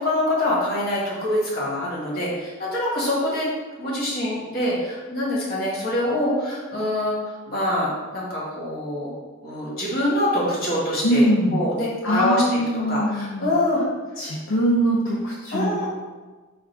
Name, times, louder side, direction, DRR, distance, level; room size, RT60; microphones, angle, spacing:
voice 1, 0.0-3.5 3.8-9.1 9.4-11.2 11.5-12.6 12.9-13.8 15.5-15.9, left 1 dB, 45° left, -6 dB, 1.3 m, -25 dB
voice 2, 11.0-11.6 12.0-13.5 14.2-15.9, equal, 60° left, -4 dB, 0.5 m, -22 dB
3.6 x 2.4 x 4.5 m, 1.3 s
head